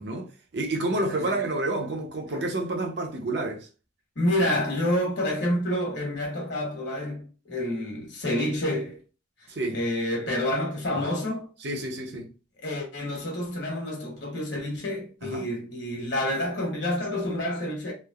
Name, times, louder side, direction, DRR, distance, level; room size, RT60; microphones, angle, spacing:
voice 1, 0.0-3.7 9.5-9.8 11.0-11.1 11.6-12.3 15.2-15.5, right 2 dB, 55° right, 0.6 m, -29 dB
voice 2, 4.1-9.0 9.7-11.5 12.6-17.9, left 1 dB, 60° left, 1.1 m, -28 dB
3.1 x 2.0 x 2.3 m
head